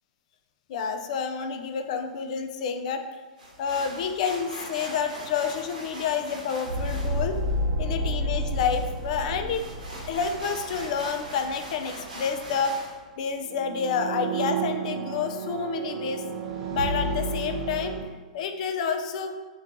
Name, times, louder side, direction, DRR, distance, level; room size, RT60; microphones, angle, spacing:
voice 1, 0.7-3.0 3.6-7.4 7.8-9.7 10.1-12.7 13.2-16.2 16.7-17.9 18.3-19.3, left 6 dB, 60° left, 6 dB, 0.3 m, -29 dB
sound 1, 3.4-13.0, right 1 dB, 85° right, 0.9 m, -42 dB
sound 2, 6.7-11.5 11.8-12.0 13.4-18.0, right 2 dB, 50° right, 0.9 m, -31 dB
2.8 x 2.2 x 3.8 m, 1.3 s
hypercardioid pair, 115°, 4 cm